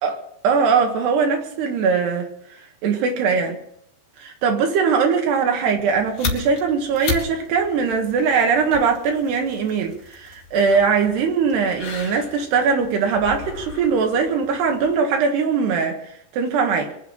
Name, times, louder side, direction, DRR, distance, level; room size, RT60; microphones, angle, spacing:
voice 1, 0.4-2.3 2.8-3.6 4.2-16.9, right 5 dB, 75° right, 3.7 m, -21 dB
sound 1, 5.8-15.0, left 5 dB, 45° left, 3.2 m, -35 dB
23.5 x 8.1 x 7.3 m
omnidirectional pair, 4.8 m